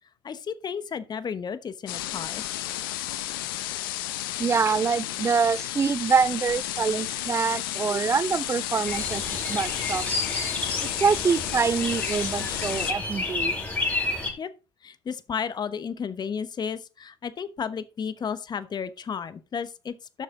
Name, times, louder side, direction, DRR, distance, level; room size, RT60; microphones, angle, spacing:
voice 1, 0.2-2.4 14.4-14.5 14.8-20.2, left 6 dB, 35° left, 1.1 m, -33 dB
sound 1, 1.9-12.9, left 14 dB, 80° left, 0.8 m, -32 dB
voice 2, 4.4-9.2 9.5-10.0 11.0-13.6, right 5 dB, 25° right, 0.4 m, -25 dB
sound 2, 8.9-14.3, left 2 dB, 15° left, 4.5 m, -30 dB
12.0 x 6.6 x 3.8 m
hypercardioid pair, 60°, 12 cm